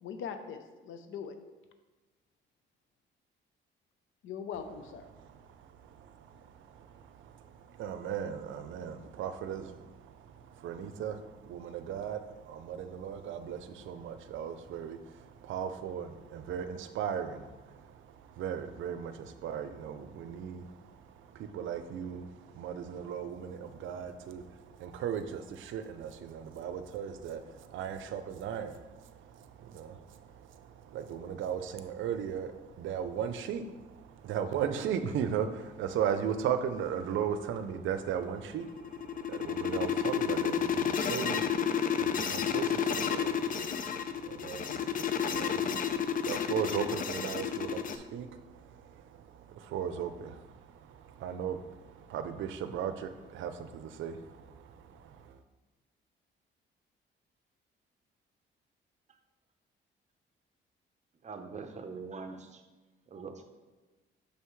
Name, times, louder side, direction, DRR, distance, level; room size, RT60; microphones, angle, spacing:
voice 1, 0.0-1.3 4.2-5.1, left 7 dB, 80° left, 8 dB, 0.7 m, -41 dB
voice 2, 5.1-55.4, right 8 dB, 80° right, 10 dB, 0.5 m, -37 dB
sound 1, 38.5-48.0, left 7 dB, 45° left, 0.5 m, -31 dB
voice 3, 61.2-62.6 63.1-63.4, right 4 dB, 35° right, 6 dB, 0.7 m, -43 dB
6.4 x 5.6 x 3.1 m, 1.2 s
cardioid pair, 90°, 20 cm